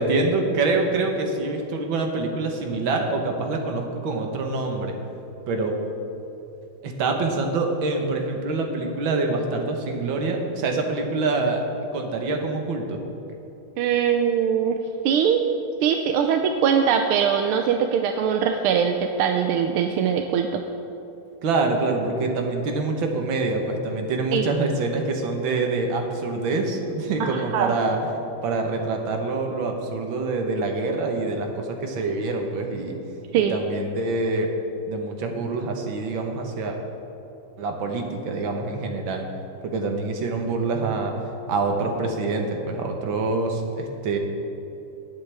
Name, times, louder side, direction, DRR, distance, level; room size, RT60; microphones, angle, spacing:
voice 1, 0.0-4.9 5.5-5.8 6.8-11.6 11.9-13.0 21.4-28.0 28.4-33.0 33.4-34.5 34.9-36.8 37.6-39.3 39.6-41.1 41.5-44.2, right 3 dB, 65° right, 3 dB, 1.9 m, -25 dB
voice 2, 13.8-14.8 15.0-15.5 15.8-20.5 24.3-24.4 27.2-27.7 33.3-33.5, right 8 dB, 85° right, 5 dB, 1.5 m, -22 dB
19.0 x 8.0 x 3.4 m, 2.9 s
omnidirectional pair, 2.3 m